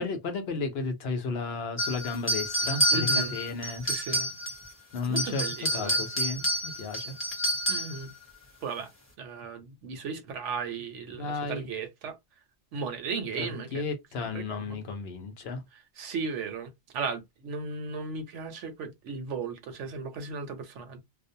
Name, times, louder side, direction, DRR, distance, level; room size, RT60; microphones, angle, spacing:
voice 1, 0.0-3.9 4.9-5.4 5.7-7.2 11.2-11.6 13.4-15.6, left 4 dB, 65° left, 0.8 m, -33 dB
sound 1, 1.8-4.7 5.0-8.0, equal, 15° left, 0.8 m, -28 dB
voice 2, 2.9-3.3 3.8-4.3 5.1-6.0 7.7-8.1 8.6-8.9 9.2-12.2 12.7-13.8 14.2-14.8 15.7-21.0, right 4 dB, 80° right, 1.0 m, -36 dB
2.4 x 2.1 x 2.6 m
omnidirectional pair, 1.2 m